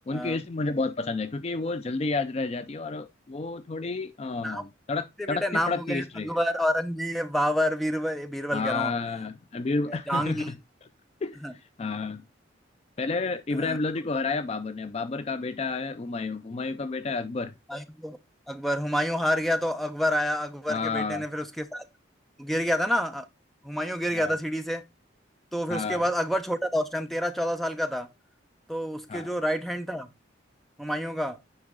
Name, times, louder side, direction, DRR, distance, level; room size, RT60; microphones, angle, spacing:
voice 1, 0.1-6.4 8.5-10.5 11.2-12.2 13.0-17.5 20.7-21.3 24.1-24.3 25.7-26.0 29.1-29.3, left 3 dB, 30° left, 0.4 m, -31 dB
voice 2, 5.2-8.9 9.9-10.5 11.4-11.5 13.6-13.8 17.7-18.2 18.5-21.8 22.4-23.3 23.6-24.8 25.5-28.1 28.7-30.1 30.8-31.4, equal, ahead, 0.7 m, -28 dB
9.6 x 3.8 x 3.8 m
head